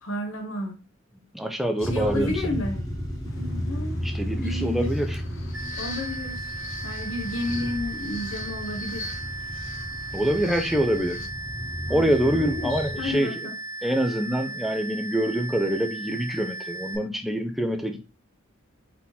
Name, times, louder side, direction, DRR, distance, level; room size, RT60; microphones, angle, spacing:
voice 1, 0.0-0.8 1.8-2.8 3.4-3.9 4.4-4.9 5.8-6.5 6.8-9.1 11.0-11.2 11.9-13.5, left 1 dB, 80° left, 4 dB, 1.1 m, -32 dB
voice 2, 1.2-2.6 4.0-5.2 10.1-11.2 11.9-13.4 13.8-18.1, right 1 dB, ahead, 5 dB, 0.5 m, -25 dB
sound 1, 1.8-13.1, equal, 15° left, 0.9 m, -33 dB
sound 2, 3.3-11.3, left 4 dB, 65° left, 0.7 m, -42 dB
sound 3, 5.5-17.0, right 2 dB, 60° right, 1.5 m, -36 dB
4.1 x 3.7 x 2.8 m, 0.30 s
head